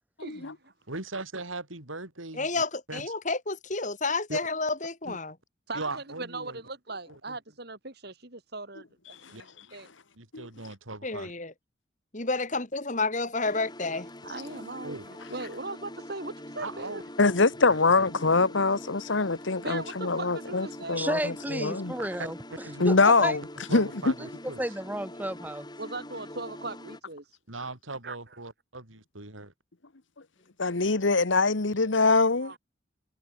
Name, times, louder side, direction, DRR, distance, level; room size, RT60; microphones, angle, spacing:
voice 1, 0.2-0.7 5.7-9.9 14.2-17.0 19.6-21.0 25.8-27.3 28.0-28.2 32.4-32.6, right 3 dB, 55° right, 3.5 m, -39 dB
voice 2, 0.9-2.6 2.9-3.1 4.3-4.4 5.0-5.2 5.7-6.6 7.1-7.4 9.3-9.4 10.1-11.3 14.8-15.0 16.6-17.0 22.0-22.9 23.2-23.4 23.7-24.6 27.5-29.5, right 2 dB, 85° right, 4.8 m, -39 dB
voice 3, 2.3-5.3 11.0-11.5 12.1-14.1, left 3 dB, 40° left, 3.0 m, -30 dB
sound 1, 13.4-27.0, left 1 dB, 20° left, 6.0 m, -44 dB
voice 4, 17.2-21.9 22.8-23.4 23.7-24.1 30.6-32.5, left 3 dB, 70° left, 1.4 m, -24 dB
voice 5, 21.0-22.4 22.8-23.4 24.2-25.7, right 1 dB, 10° right, 2.9 m, -32 dB
head